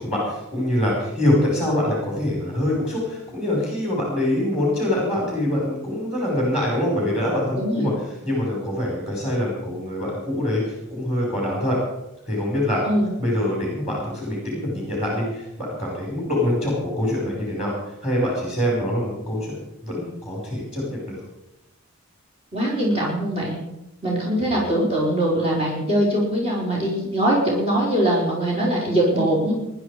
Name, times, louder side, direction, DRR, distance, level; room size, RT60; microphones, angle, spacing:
voice 1, 0.0-7.9 8.2-11.8 12.3-12.8 13.2-17.7 18.0-19.5 19.8-21.2 24.4-24.7, left 1 dB, 5° right, -3 dB, 5.2 m, -24 dB
voice 2, 7.6-7.9 12.8-13.1 22.5-23.6 24.0-29.5, right 1 dB, 30° right, -4 dB, 4.3 m, -22 dB
20.0 x 11.5 x 5.0 m, 0.91 s
head